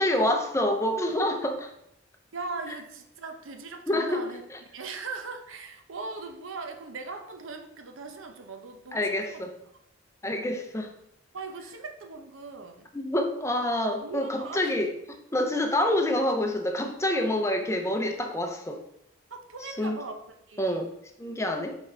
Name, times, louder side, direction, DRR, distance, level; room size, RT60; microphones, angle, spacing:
voice 1, 0.0-1.7 3.9-4.2 4.5-4.6 8.9-9.5 10.2-10.9 12.9-18.8 19.8-20.0 20.6-20.9 21.2-21.8, left 1 dB, 15° left, 4 dB, 0.6 m, -27 dB
voice 2, 2.3-4.4 4.7-9.4 11.3-12.9 14.0-14.8 19.3-20.2 20.5-20.9, right 4 dB, 85° right, 5 dB, 0.8 m, -39 dB
5.5 x 4.5 x 3.9 m, 0.77 s
head